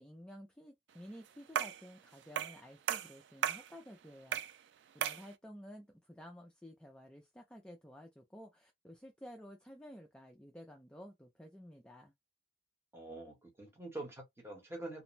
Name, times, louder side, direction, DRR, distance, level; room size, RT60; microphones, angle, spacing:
voice 1, 0.0-4.4 4.9-12.1, equal, 5° left, 0.4 m, -53 dB
sound 1, 1.5-1.9 2.4-2.6 2.9-3.7 4.3-4.6 5.0-5.3, right 9 dB, 80° right, 0.3 m, -35 dB
voice 2, 12.9-15.0, right 2 dB, 15° right, 1.0 m, -45 dB
2.5 x 2.0 x 3.1 m
head